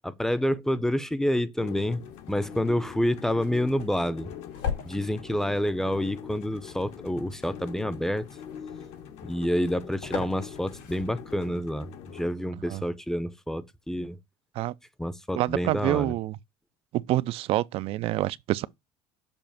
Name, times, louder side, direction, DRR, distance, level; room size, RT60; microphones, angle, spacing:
voice 1, 0.0-2.0 2.3-4.3 4.9-8.3 9.2-14.2 15.0-16.1, left 1 dB, 5° left, 0.6 m, -28 dB
sound 1, 1.6-12.3, left 8 dB, 65° left, 1.1 m, -43 dB
sound 2, 1.9-11.5, left 7 dB, 85° left, 4.2 m, -42 dB
voice 2, 15.4-16.4 16.9-18.7, right 16 dB, 55° right, 0.3 m, -27 dB
7.0 x 2.5 x 5.6 m
supercardioid pair, 115°, 12 cm